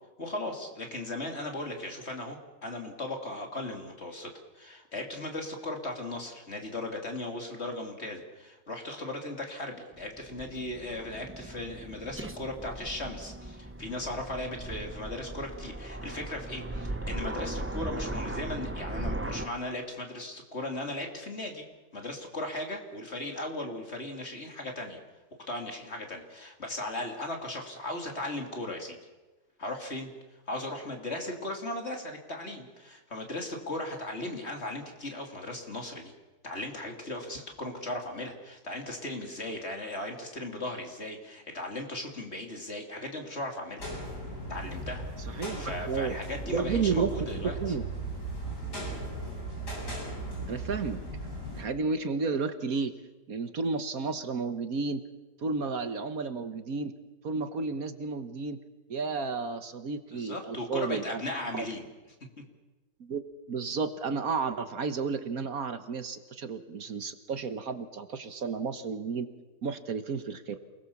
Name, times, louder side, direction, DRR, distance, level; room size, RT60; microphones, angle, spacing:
voice 1, 0.2-21.6 21.9-25.0 25.5-29.0 29.6-30.1 30.5-36.1 36.4-43.9 44.5-47.6 60.1-61.9, left 1 dB, 40° left, 3 dB, 3.4 m, -37 dB
Aircraft, 9.9-19.5, right 1 dB, 10° right, 0.7 m, -38 dB
sound 1, 43.8-51.6, right 2 dB, 90° left, 8.3 m, -37 dB
voice 2, 45.3-46.2 46.5-47.1 47.4-47.8 50.5-51.0 51.5-52.9 53.3-55.0 55.4-56.9 57.2-58.6 58.9-61.2 61.5-61.7 63.0-63.2 63.5-69.3 69.6-70.6, right 4 dB, 65° right, 9 dB, 1.6 m, -32 dB
28.0 x 20.5 x 7.2 m, 1.2 s
omnidirectional pair, 1.7 m